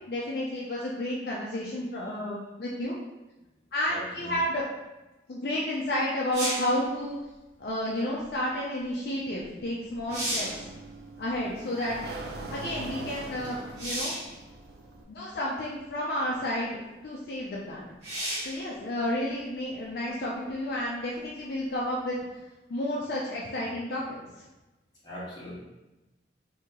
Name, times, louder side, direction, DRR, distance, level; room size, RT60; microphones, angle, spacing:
voice 1, 0.1-3.0 3.7-4.6 5.3-7.2 7.6-10.5 11.2-12.0 12.5-14.1 15.1-18.0 18.4-22.2 22.7-24.2, left 1 dB, 55° left, -4 dB, 0.5 m, -31 dB
voice 2, 3.9-4.3 25.0-25.6, equal, 25° left, -8 dB, 1.1 m, -40 dB
sound 1, 6.3-6.8 9.4-9.5 9.9-10.6 13.8-14.3 15.3-15.4 18.0-18.6 22.2-22.3, equal, 40° right, 1.4 m, -32 dB
Sliding door, 10.0-15.0, right 2 dB, 60° right, 0.4 m, -42 dB
2.9 x 2.8 x 3.7 m, 1.0 s
head